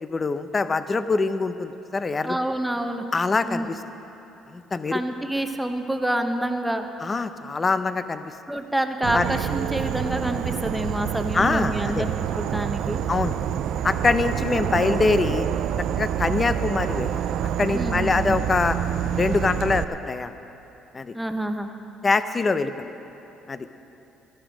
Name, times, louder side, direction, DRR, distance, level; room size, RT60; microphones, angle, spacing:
voice 1, 0.0-2.4 3.1-3.8 4.5-5.0 7.0-8.3 9.1-9.3 11.3-12.0 13.1-13.4 13.8-15.5 15.9-17.2 17.6-18.8 19.1-20.3 20.9-21.1 22.0-22.7 23.5-23.7, left 4 dB, 30° left, 11 dB, 0.6 m, -24 dB
voice 2, 2.2-3.0 3.4-3.7 4.9-6.9 8.5-13.0 14.7-14.9 17.7-18.4 21.1-21.7, right 1 dB, 5° right, 6 dB, 1.0 m, -27 dB
Insect / Frog, 9.0-19.8, right 10 dB, 70° right, 0.4 m, -27 dB
15.0 x 11.0 x 5.1 m, 3.0 s
supercardioid pair, 85°, 0 cm